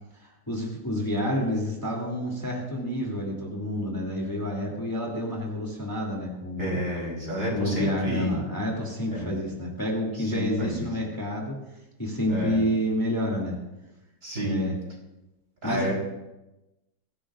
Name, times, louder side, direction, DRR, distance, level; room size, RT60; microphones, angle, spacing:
voice 1, 0.2-6.8 7.5-11.5 12.0-13.6 14.4-14.7 15.6-15.9, equal, 10° left, -2 dB, 2.7 m, -29 dB
voice 2, 6.6-8.3 9.1-9.3 10.3-10.9 12.3-12.6 14.2-14.7 15.6-15.9, equal, 40° right, -2 dB, 4.4 m, -30 dB
24.0 x 16.5 x 2.5 m, 0.98 s
omnidirectional pair, 2.0 m